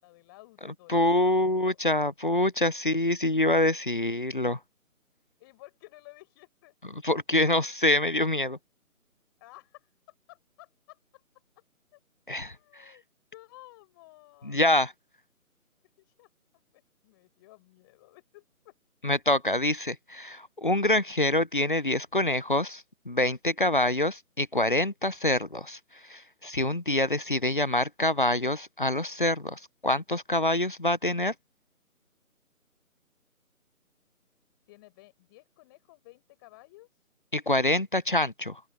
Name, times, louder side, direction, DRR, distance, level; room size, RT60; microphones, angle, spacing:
voice 1, 0.0-1.9 5.4-6.7 9.4-11.2 11.9-12.0 12.3-13.0 13.3-14.8 16.0-18.7 34.7-37.1, left 20 dB, 15° left, 5.7 m, -54 dB
voice 2, 0.9-4.6 7.0-8.6 12.3-12.5 14.4-14.9 19.0-25.8 26.1-31.3 37.3-38.6, left 1 dB, 35° left, 0.6 m, -26 dB
open air
figure-of-eight pair, 155°, 43 cm